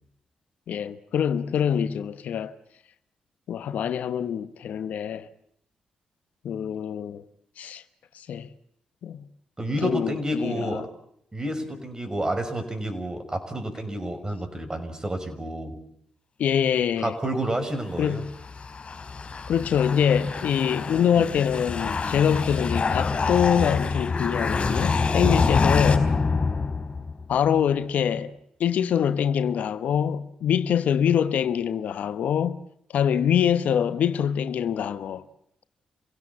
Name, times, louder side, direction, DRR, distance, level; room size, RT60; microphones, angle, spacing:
voice 1, 0.7-2.5 3.5-5.3 6.4-7.2 7.6-7.8 8.1-8.5 9.0-9.3 9.8-10.8 16.4-17.1 18.0-18.3 19.5-26.1 27.3-28.3 28.6-32.6 32.9-35.3, left 8 dB, 70° left, 1.0 m, -24 dB
voice 2, 9.6-10.9 11.3-15.8 17.0-18.2 25.2-25.5, right 1 dB, 25° right, 6.0 m, -30 dB
sound 1, 17.9-27.2, left 4 dB, 50° left, 4.7 m, -26 dB
28.5 x 17.0 x 8.5 m
hypercardioid pair, 45°, 3 cm